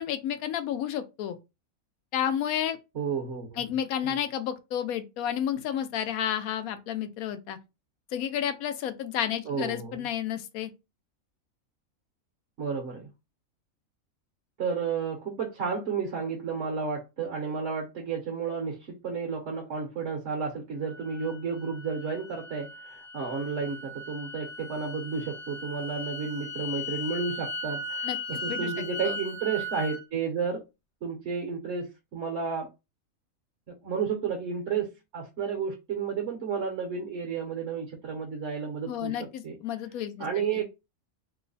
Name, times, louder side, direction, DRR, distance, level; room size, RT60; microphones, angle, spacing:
voice 1, 0.0-1.4 2.1-2.8 3.6-7.6 8.1-10.7 28.0-28.2 28.5-29.2 38.9-40.6, left 10 dB, 80° left, 1.0 m, -31 dB
voice 2, 2.9-3.6 4.1-4.2 9.5-10.0 12.6-13.1 14.6-30.6 31.0-32.7 33.7-39.2 39.4-39.6 40.2-40.6, right 5 dB, 60° right, 1.1 m, -32 dB
sound 1, 20.8-30.0, left 1 dB, 60° left, 1.0 m, -38 dB
3.0 x 2.0 x 3.9 m
omnidirectional pair, 1.5 m